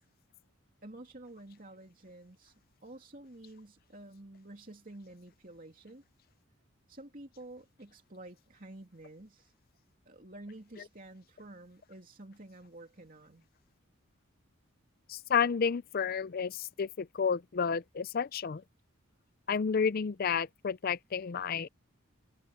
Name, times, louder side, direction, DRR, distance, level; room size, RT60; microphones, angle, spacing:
voice 1, 0.8-2.5 2.8-6.0 6.9-9.5 10.0-13.5, right 1 dB, 40° right, 3.0 m, -50 dB
voice 2, 15.1-18.6 19.5-21.7, left 6 dB, 45° left, 0.4 m, -31 dB
head